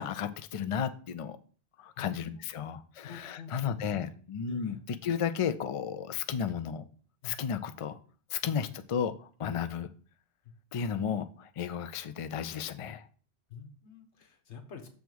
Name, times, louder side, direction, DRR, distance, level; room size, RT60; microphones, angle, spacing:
voice 1, 0.0-1.4 1.8-4.8 5.0-6.8 7.2-8.0 8.3-9.9 10.7-13.0, left 7 dB, 60° left, 11 dB, 0.3 m, -33 dB
voice 2, 1.9-2.5 3.0-4.1 4.5-4.8 7.2-7.3 8.4-8.5 13.5-14.9, left 5 dB, 75° left, 4 dB, 1.4 m, -47 dB
6.4 x 3.5 x 6.1 m, 0.41 s
omnidirectional pair, 1.2 m